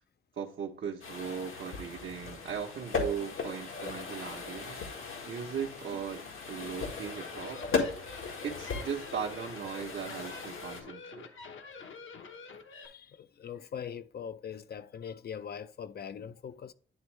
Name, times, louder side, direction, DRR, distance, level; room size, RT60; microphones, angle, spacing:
voice 1, 0.4-4.8 5.3-7.7 8.4-11.3, right 7 dB, 65° right, 1.0 m, -38 dB
sound 1, 1.0-10.8, left 4 dB, 85° left, 1.7 m, -37 dB
sound 2, 7.1-12.9, left 5 dB, 70° left, 1.0 m, -47 dB
voice 2, 12.7-16.7, left 8 dB, 50° left, 0.5 m, -42 dB
10.5 x 3.5 x 3.2 m
wide cardioid pair, 120°, 21 cm